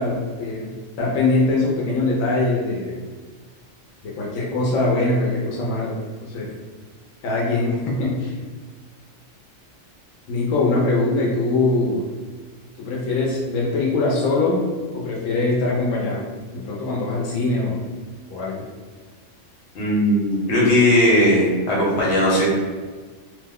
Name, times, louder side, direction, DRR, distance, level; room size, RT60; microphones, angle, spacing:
voice 1, 0.0-3.0 4.0-5.9 6.3-6.5 7.2-8.3 10.3-12.0 12.8-14.6 14.9-16.2 16.5-17.8 18.3-18.6, left 2 dB, 90° left, -4 dB, 1.0 m, -22 dB
voice 2, 19.7-22.5, left 1 dB, 65° left, -5 dB, 1.2 m, -18 dB
2.8 x 2.1 x 3.5 m, 1.5 s
omnidirectional pair, 1.3 m